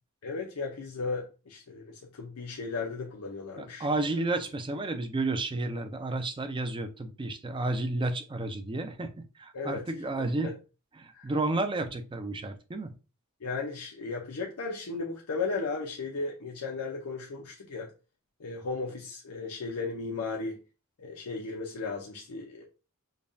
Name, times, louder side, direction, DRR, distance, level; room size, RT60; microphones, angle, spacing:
voice 1, 0.2-3.9 9.5-9.8 11.1-11.3 13.4-17.9 18.4-20.6 21.0-22.6, left 4 dB, 90° left, 0.6 m, -35 dB
voice 2, 3.6-10.5 11.0-12.9, right 2 dB, 20° right, 0.4 m, -31 dB
5.2 x 2.2 x 2.6 m
head